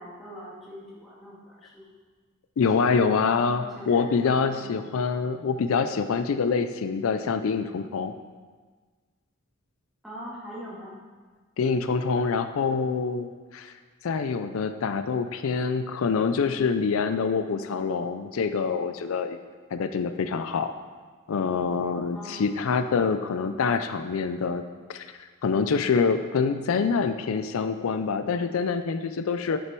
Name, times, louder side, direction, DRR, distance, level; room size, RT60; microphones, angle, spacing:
voice 1, 0.0-1.9 2.7-3.3 3.6-4.9 10.0-11.0 22.1-22.5, equal, ahead, -8 dB, 2.1 m, -42 dB
voice 2, 2.6-8.1 11.6-13.7 14.0-19.4 19.7-20.7 21.3-24.6 24.9-25.1 25.4-29.6, left 5 dB, 80° left, 9 dB, 0.4 m, -26 dB
8.8 x 6.4 x 4.5 m, 1.4 s
head